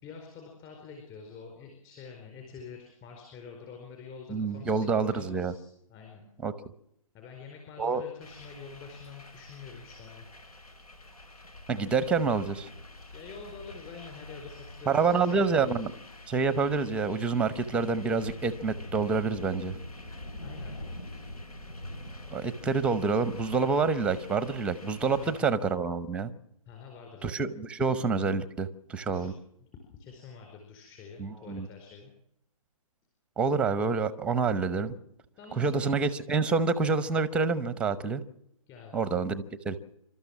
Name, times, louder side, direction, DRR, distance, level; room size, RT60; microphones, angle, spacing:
voice 1, 0.0-6.3 7.1-10.3 13.1-15.8 20.4-20.8 25.0-25.5 26.7-27.6 29.0-29.3 29.6-32.1 35.4-36.0 38.7-39.0, left 5 dB, 20° left, 2 dB, 4.7 m, -47 dB
voice 2, 4.3-5.5 6.4-6.5 7.8-8.0 11.7-12.7 14.9-15.9 16.3-19.7 22.3-26.3 27.2-29.3 31.2-31.7 33.4-34.9 35.6-38.2 38.9-39.8, right 4 dB, 5° right, 15 dB, 0.8 m, -27 dB
sound 1, 8.2-25.4, left 1 dB, 85° left, 5.0 m, -45 dB
27.5 x 13.0 x 7.3 m, 0.78 s
hypercardioid pair, 150°, 19 cm